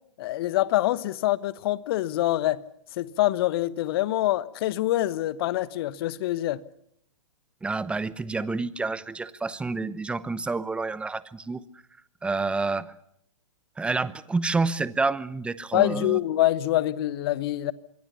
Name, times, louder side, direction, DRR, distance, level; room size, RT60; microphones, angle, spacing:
voice 1, 0.2-2.6 3.0-6.6 15.7-17.7, left 15 dB, 45° left, 1.2 m, -25 dB
voice 2, 7.6-11.6 12.2-12.9 13.8-16.2, right 3 dB, 5° right, 0.9 m, -28 dB
25.5 x 22.5 x 7.0 m
figure-of-eight pair, 120°, 18 cm